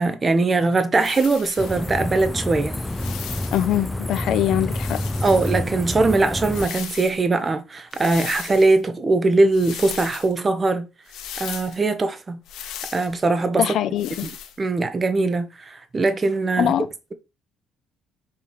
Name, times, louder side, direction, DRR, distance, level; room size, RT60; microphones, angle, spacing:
voice 1, 0.0-2.8 5.2-10.9 11.4-12.4 12.9-13.7 14.2-14.3 14.6-16.7, right 3 dB, 25° right, 1.1 m, -21 dB
sound 1, 0.9-1.9 2.7-3.8 4.7-5.6 6.4-7.2 7.9-8.8 9.5-10.3 11.1-11.8 12.5-13.1 14.0-14.6, left 9 dB, 80° left, 1.4 m, -37 dB
sound 2, 1.6-6.7, left 1 dB, 10° left, 0.6 m, -28 dB
voice 2, 3.5-5.0 13.6-14.3 16.6-16.9, left 11 dB, 60° left, 0.8 m, -22 dB
6.8 x 3.4 x 6.0 m
cardioid pair, 115°, 0 cm